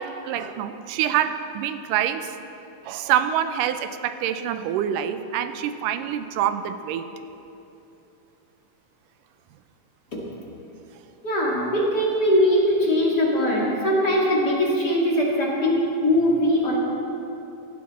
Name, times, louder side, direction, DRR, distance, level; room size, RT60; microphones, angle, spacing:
voice 1, 0.0-2.4 2.8-7.1, right 10 dB, 80° right, 10 dB, 2.2 m, -26 dB
voice 2, 11.2-16.8, equal, 35° left, -4 dB, 2.2 m, -21 dB
18.0 x 12.5 x 4.2 m, 2.9 s
omnidirectional pair, 3.9 m